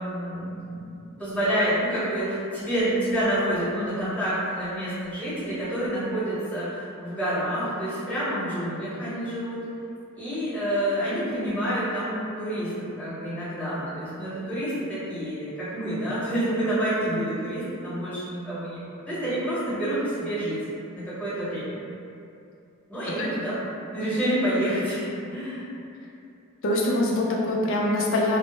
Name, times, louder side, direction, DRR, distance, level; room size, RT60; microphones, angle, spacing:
voice 1, 0.0-9.6 10.1-12.7 13.0-20.6 20.9-21.7 22.9-23.6 23.9-25.0 25.3-25.7, right 1 dB, 5° left, -13 dB, 0.9 m, -28 dB
voice 2, 26.6-28.4, left 1 dB, 60° left, -3 dB, 0.4 m, -24 dB
2.0 x 2.0 x 3.0 m, 2.6 s
head